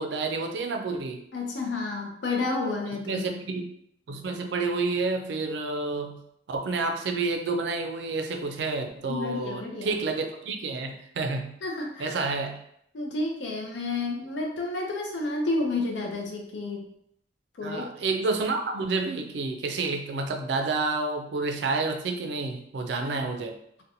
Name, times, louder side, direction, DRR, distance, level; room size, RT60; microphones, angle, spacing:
voice 1, 0.0-1.2 3.0-3.6 4.1-6.2 6.5-11.5 12.0-12.6 17.6-23.6, right 3 dB, 75° right, 5 dB, 0.4 m, -29 dB
voice 2, 1.3-3.2 9.1-10.0 11.6-12.2 12.9-16.9 17.6-17.9 23.0-23.2, left 3 dB, 85° left, 0 dB, 0.5 m, -30 dB
2.6 x 2.1 x 2.7 m, 0.73 s
head